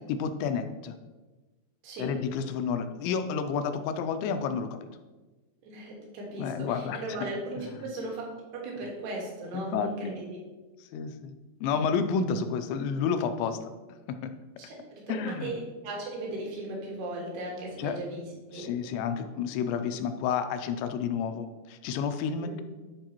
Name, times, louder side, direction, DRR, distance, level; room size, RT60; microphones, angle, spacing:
voice 1, 0.1-1.0 2.0-4.9 6.4-7.3 9.5-10.2 10.8-11.3 11.6-13.7 14.1-14.3 15.1-15.5 17.8-18.0 18.5-22.6, left 6 dB, 85° left, 8 dB, 2.7 m, -30 dB
voice 2, 1.8-2.2 5.6-8.2 8.5-10.4 14.7-18.7 22.4-22.6, right 2 dB, 70° right, -2 dB, 3.4 m, -37 dB
12.0 x 4.7 x 3.0 m, 1.2 s
omnidirectional pair, 5.2 m